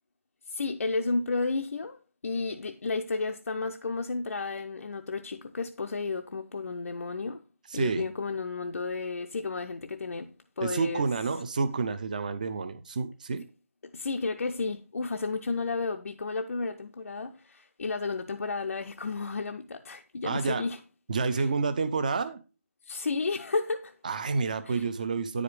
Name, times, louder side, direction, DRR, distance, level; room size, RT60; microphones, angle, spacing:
voice 1, 0.5-7.4 7.7-11.1 13.8-20.8 21.3-21.5 22.8-23.9 24.6-24.9, left 3 dB, 65° left, 0.5 m, -32 dB
voice 2, 7.7-8.0 10.6-13.4 20.2-20.6 21.1-22.4 24.0-25.4, right 4 dB, 30° right, 0.5 m, -29 dB
9.6 x 4.9 x 3.3 m
figure-of-eight pair, 165°, 8 cm